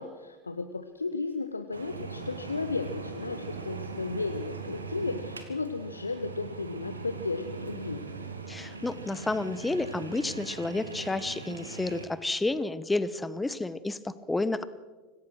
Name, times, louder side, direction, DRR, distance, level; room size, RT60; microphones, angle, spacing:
voice 1, 0.0-8.0, left 3 dB, 80° left, 8 dB, 1.0 m, -34 dB
sound 1, 1.7-12.0, right 4 dB, 80° right, 2.4 m, -40 dB
voice 2, 8.5-14.6, left 2 dB, 10° left, 15 dB, 1.0 m, -30 dB
26.0 x 17.5 x 6.2 m, 1.2 s
figure-of-eight pair, 80°, 0 cm